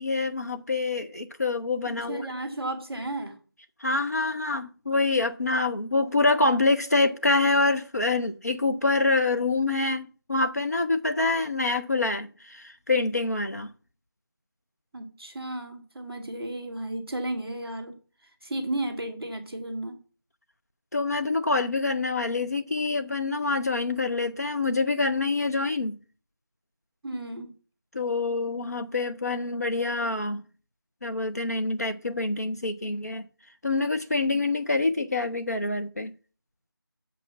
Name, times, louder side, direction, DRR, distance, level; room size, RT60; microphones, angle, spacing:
voice 1, 0.0-2.3 3.8-13.7 20.9-26.0 27.9-30.4 31.0-33.3 33.6-36.1, left 3 dB, 45° left, 0.6 m, -26 dB
voice 2, 2.1-3.4 14.9-18.0 18.4-20.0 27.0-27.5 34.2-34.4, right 1 dB, 5° left, 0.9 m, -33 dB
7.2 x 5.7 x 7.1 m
figure-of-eight pair, 175°, 12 cm